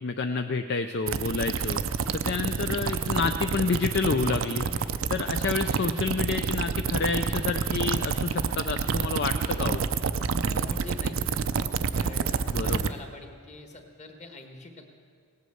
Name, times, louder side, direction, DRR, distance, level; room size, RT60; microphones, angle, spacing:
voice 1, 0.0-1.8 2.1-4.6 5.1-9.8 12.5-12.9, left 4 dB, 50° left, 7 dB, 0.4 m, -29 dB
sound 1, 1.1-12.9, right 5 dB, 60° right, 0.5 m, -28 dB
voice 2, 10.4-11.2 11.9-14.9, left 1 dB, 30° left, 4 dB, 1.4 m, -44 dB
18.0 x 8.2 x 7.8 m, 2.1 s
head